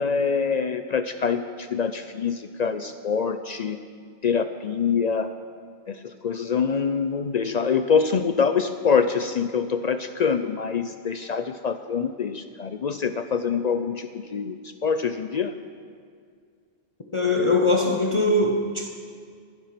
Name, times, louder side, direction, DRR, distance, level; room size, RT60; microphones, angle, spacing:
voice 1, 0.0-3.8 4.2-5.3 5.9-6.0 6.2-14.6 14.8-15.5, left 6 dB, 55° left, 9 dB, 0.4 m, -25 dB
voice 2, 17.1-18.9, left 2 dB, 30° left, 2 dB, 0.7 m, -21 dB
12.0 x 10.5 x 5.8 m, 2.1 s
omnidirectional pair, 1.1 m